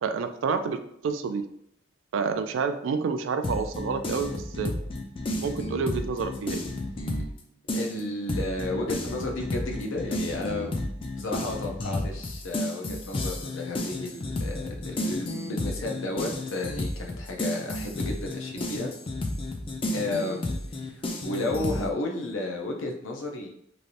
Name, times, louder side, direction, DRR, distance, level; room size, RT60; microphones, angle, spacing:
voice 1, 0.0-1.4 2.1-4.8 5.4-6.7, right 5 dB, 75° right, 8 dB, 0.3 m, -29 dB
sound 1, 3.4-7.4 7.7-21.9, left 1 dB, 25° left, 0.4 m, -32 dB
voice 2, 7.7-10.9 11.2-18.9 19.9-23.5, left 2 dB, 80° left, 1 dB, 0.6 m, -33 dB
3.1 x 2.7 x 2.5 m, 0.74 s
head